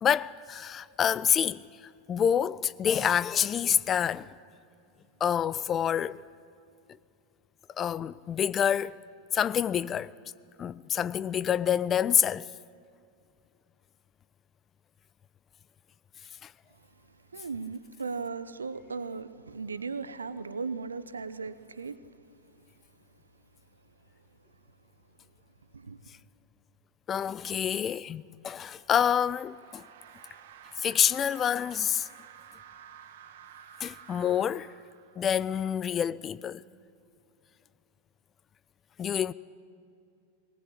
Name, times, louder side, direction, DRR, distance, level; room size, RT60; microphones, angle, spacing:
voice 1, 0.0-4.3 5.2-6.2 7.8-9.0 9.3-10.1 10.6-12.5 16.4-16.5 27.1-29.8 30.8-32.1 33.8-34.7 35.2-36.6 39.0-39.3, left 9 dB, 25° left, 0.4 m, -27 dB
voice 2, 17.3-22.0 25.7-26.0, right 4 dB, 75° right, 0.9 m, -37 dB
sound 1, 28.6-35.6, right 9 dB, 55° right, 1.2 m, -52 dB
19.5 x 19.5 x 8.8 m
figure-of-eight pair, 90°, 0 cm